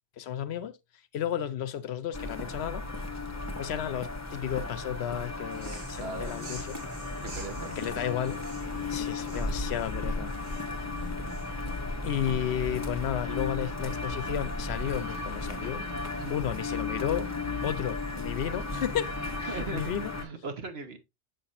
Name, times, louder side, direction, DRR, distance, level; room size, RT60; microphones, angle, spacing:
voice 1, 0.2-0.8 1.1-2.8 3.6-6.8 7.8-8.4 8.9-10.3 12.0-15.9 16.3-17.3 17.6-19.2 19.4-20.1, left 10 dB, 70° left, 0.8 m, -33 dB
sound 1, 2.1-20.2, left 3 dB, 15° left, 0.9 m, -35 dB
sound 2, 5.5-11.8, right 3 dB, 85° right, 2.1 m, -50 dB
voice 2, 5.9-6.5 7.2-8.1 16.2-16.4 19.5-19.9 20.2-21.0, right 3 dB, 60° right, 1.3 m, -39 dB
6.7 x 5.9 x 2.5 m
omnidirectional pair, 1.2 m